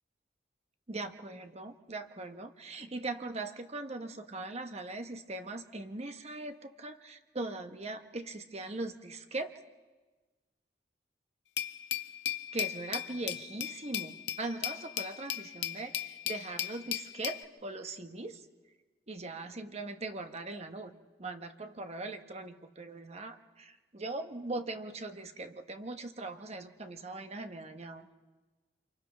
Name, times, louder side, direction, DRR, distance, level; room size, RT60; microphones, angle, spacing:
voice 1, 0.9-9.5 12.5-18.4 19.1-20.9 21.2-28.1, right 2 dB, 40° right, 7 dB, 1.0 m, -40 dB
Glass, 11.6-17.4, left 11 dB, 80° left, 0.7 m, -36 dB
29.5 x 26.5 x 3.4 m, 1.3 s
head